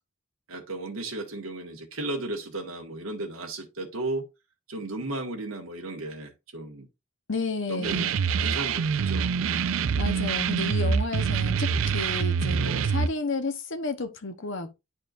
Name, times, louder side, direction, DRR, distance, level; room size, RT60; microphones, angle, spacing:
voice 1, 0.5-4.3 4.7-6.9 7.7-8.1 8.4-9.6 12.5-12.9, right 2 dB, 90° right, 1.8 m, -35 dB
voice 2, 7.3-8.1 10.0-14.7, left 3 dB, 60° left, 1.0 m, -32 dB
sound 1, 7.8-13.1, right 6 dB, 70° right, 0.4 m, -25 dB
11.0 x 4.4 x 2.6 m
head